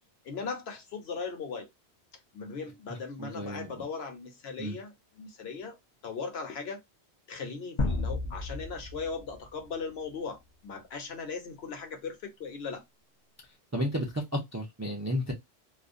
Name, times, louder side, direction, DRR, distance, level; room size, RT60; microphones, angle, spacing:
voice 1, 0.2-1.7 2.3-5.8 6.0-6.8 7.3-12.8, left 5 dB, 65° left, 1.0 m, -38 dB
voice 2, 3.2-3.8 4.6-4.8 13.7-15.3, equal, 25° right, 0.4 m, -32 dB
sound 1, 7.8-9.7, left 2 dB, 40° left, 0.4 m, -32 dB
2.4 x 2.1 x 2.4 m
omnidirectional pair, 1.2 m